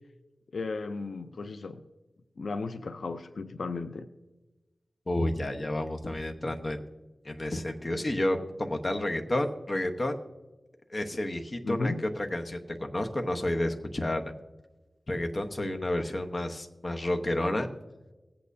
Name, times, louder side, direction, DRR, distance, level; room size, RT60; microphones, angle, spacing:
voice 1, 0.5-1.8 2.4-4.1 11.6-12.0, left 3 dB, 85° left, 9 dB, 0.5 m, -34 dB
voice 2, 5.1-6.8 7.2-10.2 10.9-14.2 15.1-17.7, left 1 dB, 40° left, 5 dB, 1.0 m, -30 dB
19.0 x 8.6 x 2.7 m, 1.1 s
wide cardioid pair, 80°, 0 cm